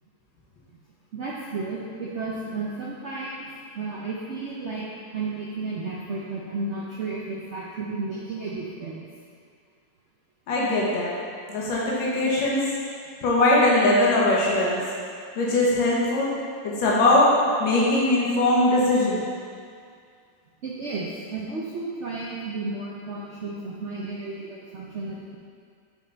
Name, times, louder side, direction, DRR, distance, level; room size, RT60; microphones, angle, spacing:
voice 1, 1.1-3.5 3.7-4.9 5.1-9.0 12.5-12.6 20.6-25.4, right 3 dB, 70° right, -5 dB, 0.6 m, -33 dB
voice 2, 10.5-11.1 11.5-12.6 13.2-14.8 15.4-16.3 16.6-17.3 17.6-19.2, left 2 dB, 80° left, -6 dB, 1.8 m, -21 dB
6.6 x 5.4 x 3.9 m, 2.2 s
omnidirectional pair, 2.1 m